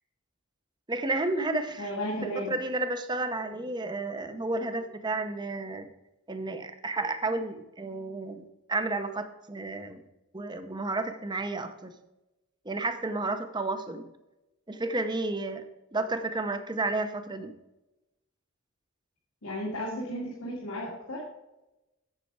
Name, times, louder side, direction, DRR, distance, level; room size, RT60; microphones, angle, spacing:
voice 1, 0.9-1.9 2.5-5.9 6.3-10.0 10.3-11.9 12.7-14.1 14.7-17.5, right 2 dB, 20° right, 8 dB, 0.8 m, -32 dB
voice 2, 1.8-2.5 19.4-21.2, equal, 85° left, -4 dB, 2.2 m, -34 dB
8.1 x 7.8 x 4.7 m, 0.96 s
head